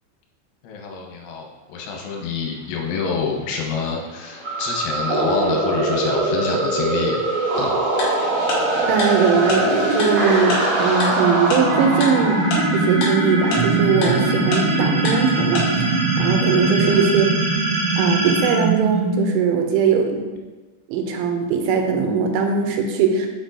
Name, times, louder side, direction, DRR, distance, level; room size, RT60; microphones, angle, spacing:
voice 1, 0.6-7.2 7.6-7.7 16.9-17.1, left 5 dB, 80° left, 0 dB, 3.3 m, -27 dB
Aircraft, 2.4-15.2, left 1 dB, 45° left, 2.2 m, -35 dB
sound 1, 4.4-19.6, right 2 dB, 60° right, 2.2 m, -21 dB
Tick-tock, 8.0-8.1 8.5-8.6 9.0-9.1 9.5-9.6 10.0-10.1 10.5-10.6 11.0-11.1 11.5-11.6 12.0-12.1 12.5-12.6 13.0-13.1 13.5-13.6 14.0-14.1 14.5-14.6 15.1-15.2 15.6-15.7, left 3 dB, 65° left, 2.7 m, -24 dB
voice 2, 8.9-12.4 12.7-17.3 18.0-20.2 20.9-23.3, right 5 dB, 85° right, 3 dB, 3.0 m, -20 dB
6.6 x 6.0 x 2.7 m, 1.2 s
omnidirectional pair, 5.6 m